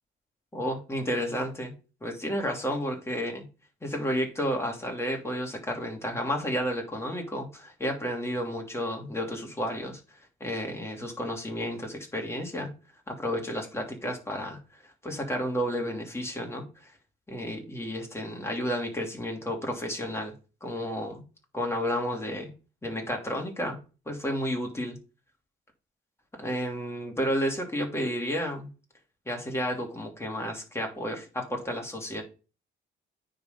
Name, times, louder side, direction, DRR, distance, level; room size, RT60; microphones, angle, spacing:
voice 1, 0.5-1.7 2.0-3.5 3.8-12.7 13.1-14.6 15.0-16.9 17.3-20.3 20.6-21.2 21.5-22.5 22.8-23.8 24.1-25.0 26.4-28.7 29.3-32.2, equal, 15° left, 1 dB, 2.7 m, -31 dB
9.3 x 4.1 x 5.2 m, 0.33 s
cardioid pair, 90°, 20 cm